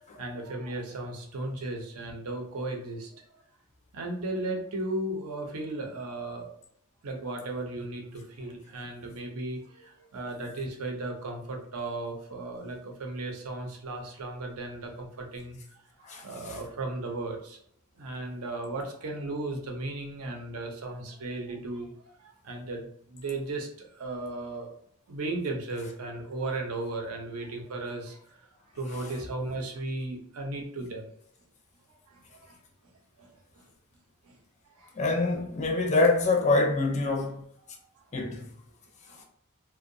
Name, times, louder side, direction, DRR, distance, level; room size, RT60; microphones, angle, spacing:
voice 1, 0.0-3.2 3.9-6.5 7.0-15.6 16.1-17.6 18.0-21.9 22.2-24.7 25.1-28.4 28.7-31.1 32.1-32.6 33.2-33.3 34.3-34.4 34.8-34.9 39.1-39.2, right 2 dB, 85° right, 0.6 m, -36 dB
voice 2, 16.0-16.6 34.9-37.4 38.1-38.5, left 3 dB, 30° left, 0.4 m, -25 dB
2.6 x 2.1 x 2.5 m
head